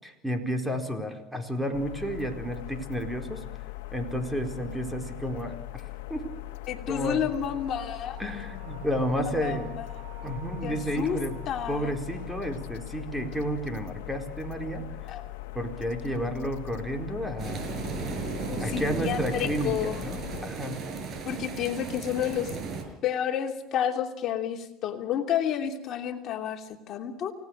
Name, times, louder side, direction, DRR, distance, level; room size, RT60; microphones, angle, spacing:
voice 1, 0.0-3.4 3.9-5.6 6.1-6.3 6.9-7.2 8.2-9.7 10.2-11.4 11.7-14.9 15.5-17.7 18.6-20.8, equal, 5° right, 5 dB, 4.6 m, -31 dB
sound 1, 1.7-20.5, left 18 dB, 90° left, 1.6 m, -40 dB
voice 2, 6.7-8.2 9.3-9.9 10.6-11.2 11.5-11.9 15.1-15.2 18.5-20.0 21.2-22.5 23.0-27.3, left 9 dB, 50° left, 4 dB, 2.9 m, -30 dB
sound 2, 7.3-14.4, right 1 dB, 70° right, 6.0 m, -50 dB
sound 3, 17.4-22.8, right 5 dB, 45° right, 6.3 m, -35 dB
29.0 x 18.5 x 6.6 m, 0.82 s
supercardioid pair, 110°, 0 cm